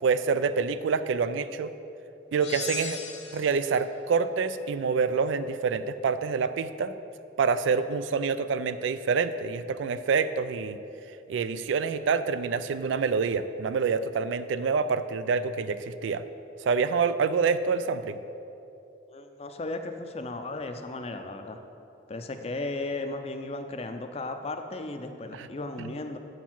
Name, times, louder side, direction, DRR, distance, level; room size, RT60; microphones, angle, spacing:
voice 1, 0.0-1.7 2.3-3.0 3.3-6.9 7.4-10.8 11.3-16.2 16.6-18.2 25.3-25.5 25.8-25.9, right 5 dB, 75° right, 13 dB, 0.3 m, -27 dB
sound 1, 2.4-3.8, left 6 dB, 65° left, 0.7 m, -38 dB
voice 2, 19.1-21.6 22.1-26.2, left 2 dB, 30° left, 7 dB, 0.4 m, -35 dB
8.1 x 4.4 x 5.9 m, 2.8 s
head